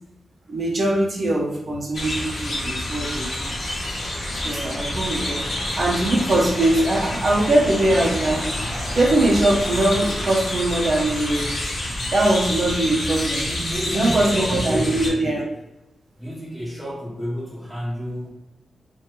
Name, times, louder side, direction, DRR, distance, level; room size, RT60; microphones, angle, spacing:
voice 1, 0.5-3.5 4.3-5.4 5.8-8.4 8.9-11.6 12.1-13.4 13.9-15.4, right 1 dB, 50° right, -3 dB, 0.6 m, -21 dB
sound 1, 1.9-15.1, left 1 dB, 50° left, 0.7 m, -28 dB
voice 2, 13.4-15.4 16.2-18.3, equal, ahead, -4 dB, 0.6 m, -30 dB
2.5 x 2.2 x 2.9 m, 0.94 s
wide cardioid pair, 120°, 0 cm